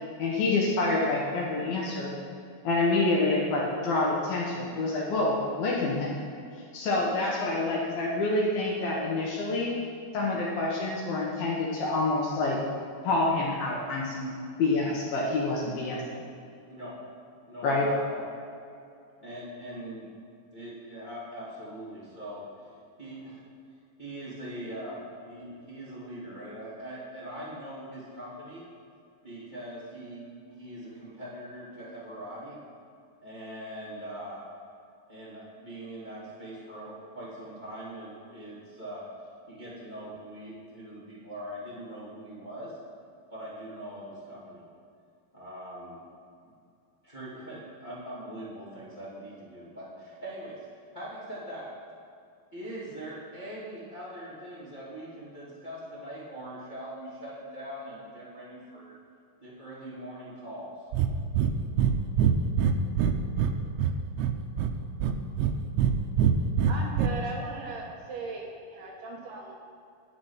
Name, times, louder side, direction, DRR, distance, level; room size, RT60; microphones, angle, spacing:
voice 1, 0.2-2.1 2.6-6.1 6.7-9.7 10.1-12.6 13.0-14.3 14.6-16.0 17.6-17.9, left 2 dB, 65° left, -3 dB, 2.5 m, -27 dB
voice 2, 16.7-17.0 17.4-18.3 19.2-20.1 20.5-23.4 24.0-28.6 29.2-32.6 33.2-34.4 35.1-39.1 39.5-42.8 43.3-44.6 45.3-46.1 47.0-50.7 50.9-51.7 52.5-58.9 59.4-60.7, right 1 dB, 20° left, -9 dB, 1.4 m, -42 dB
Breathing, 60.9-61.1 61.4-61.5 61.8-61.9 62.2-63.5 63.8-64.7 65.0-65.9 66.2-67.1, right 9 dB, 85° right, 3.1 m, -23 dB
voice 3, 66.7-69.5, right 3 dB, 70° right, -2 dB, 2.7 m, -38 dB
11.0 x 8.7 x 5.7 m, 2.4 s
omnidirectional pair, 5.4 m